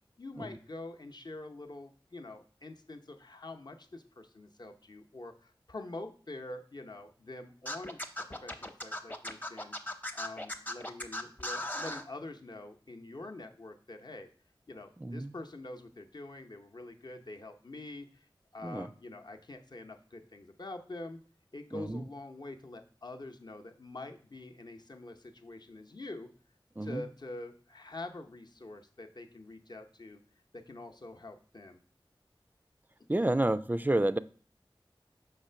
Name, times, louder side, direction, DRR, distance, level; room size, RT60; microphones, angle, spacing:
voice 1, 0.2-9.7 10.1-14.3 14.7-18.3 18.5-21.2 21.5-26.3 26.8-30.2 30.5-31.8 33.2-33.3, left 2 dB, 50° left, 5 dB, 0.8 m, -45 dB
Scratching (performance technique), 7.7-12.0, left 1 dB, 20° left, 0.8 m, -37 dB
voice 2, 15.0-15.3 18.6-18.9 21.7-22.0 26.8-27.0 33.1-34.2, right 1 dB, 20° right, 13 dB, 0.3 m, -29 dB
6.0 x 3.3 x 5.5 m, 0.43 s
wide cardioid pair, 50°, 9 cm